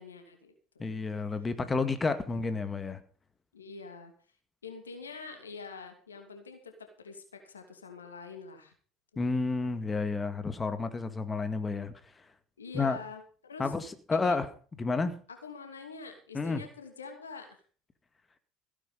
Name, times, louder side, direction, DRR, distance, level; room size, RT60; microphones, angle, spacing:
voice 1, 0.0-1.1 3.5-4.1 4.6-8.7 12.6-13.7 14.2-14.4 15.3-17.6, left 4 dB, 90° left, 6 dB, 2.8 m, -45 dB
voice 2, 0.8-3.0 9.2-11.9 12.7-13.0 13.6-14.5 14.8-15.2 16.3-16.6, left 4 dB, 25° left, 10 dB, 2.1 m, -30 dB
16.5 x 9.3 x 5.4 m, 0.40 s
hypercardioid pair, 65°, 0 cm